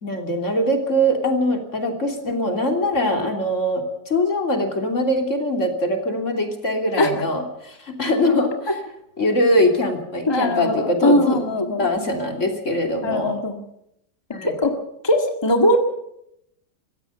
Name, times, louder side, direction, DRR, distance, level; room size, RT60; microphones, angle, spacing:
voice 1, 0.0-8.8 9.2-11.4 11.8-13.4 14.3-14.6, left 1 dB, 45° left, 3 dB, 3.5 m, -22 dB
voice 2, 10.3-11.9 13.0-13.6 14.4-14.7 15.0-15.8, left 1 dB, 15° left, 4 dB, 1.8 m, -20 dB
24.5 x 15.5 x 6.8 m, 0.79 s
omnidirectional pair, 1.8 m